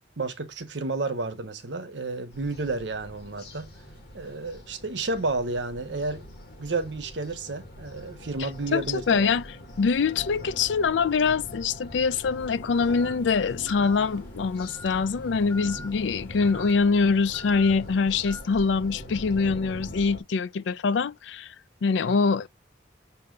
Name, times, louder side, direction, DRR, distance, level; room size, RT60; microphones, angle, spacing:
voice 1, 0.0-3.7 4.1-6.2 6.6-9.4, right 3 dB, 80° right, 1.0 m, -31 dB
sound 1, 2.3-20.2, left 1 dB, 60° left, 1.5 m, -43 dB
voice 2, 8.7-9.4 9.8-21.5 21.8-22.5, left 5 dB, 80° left, 0.4 m, -24 dB
sound 2, 12.4-18.4, left 1 dB, 10° left, 0.4 m, -46 dB
6.8 x 2.7 x 5.1 m
head